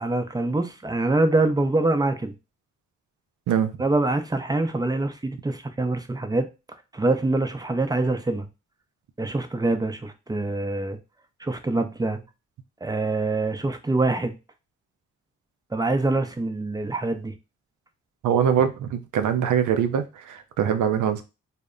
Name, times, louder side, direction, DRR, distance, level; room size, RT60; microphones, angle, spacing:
voice 1, 0.0-2.3 3.8-6.5 6.9-8.5 9.2-11.0 11.4-12.2 12.8-14.4 15.7-17.3, right 2 dB, 10° right, 0.5 m, -24 dB
voice 2, 18.2-21.2, right 8 dB, 70° right, 0.5 m, -23 dB
2.0 x 2.0 x 3.6 m
supercardioid pair, 45°, 31 cm